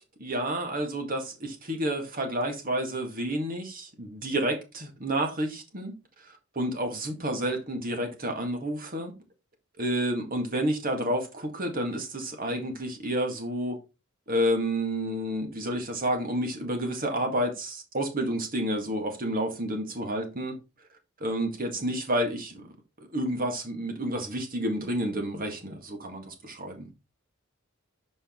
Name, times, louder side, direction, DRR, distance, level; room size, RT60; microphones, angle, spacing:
voice 1, 0.2-5.9 6.6-9.1 9.8-13.8 14.3-20.5 21.2-22.6 23.1-26.9, right 1 dB, 45° right, 1.9 m, -30 dB
6.8 x 5.2 x 3.8 m
head